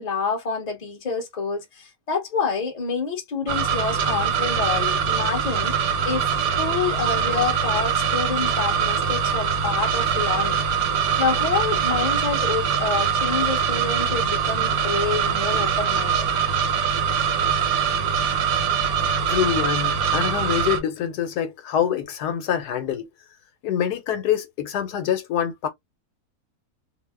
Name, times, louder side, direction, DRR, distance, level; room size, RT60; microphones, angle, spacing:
voice 1, 0.0-10.6 11.2-16.3, left 5 dB, 30° left, 0.9 m, -28 dB
sound 1, 3.5-20.8, right 7 dB, 70° right, 1.2 m, -23 dB
voice 2, 19.3-23.1 23.6-25.7, left 9 dB, 85° left, 1.3 m, -25 dB
2.8 x 2.1 x 3.3 m
omnidirectional pair, 1.7 m